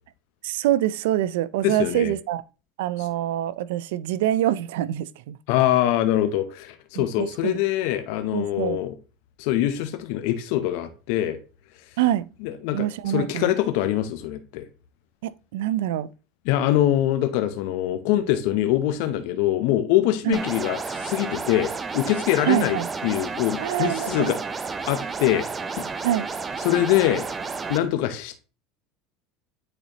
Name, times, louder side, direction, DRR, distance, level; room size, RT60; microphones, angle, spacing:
voice 1, 0.4-2.4 2.8-5.4 7.0-7.6 8.3-8.8 12.0-12.3 12.7-13.5 15.2-16.1 20.2-20.4 22.5-22.9 23.6-24.3 26.0-26.3, right 13 dB, 85° right, 0.3 m, -25 dB
voice 2, 1.6-2.1 5.5-8.9 9.4-11.4 12.4-14.7 16.5-22.8 23.0-24.4 24.9-25.5 25.8-25.9 26.6-27.3 27.7-28.4, left 13 dB, 70° left, 0.7 m, -23 dB
sound 1, 20.3-27.8, right 4 dB, 25° right, 0.6 m, -31 dB
8.9 x 4.1 x 2.9 m
supercardioid pair, 110°, 0 cm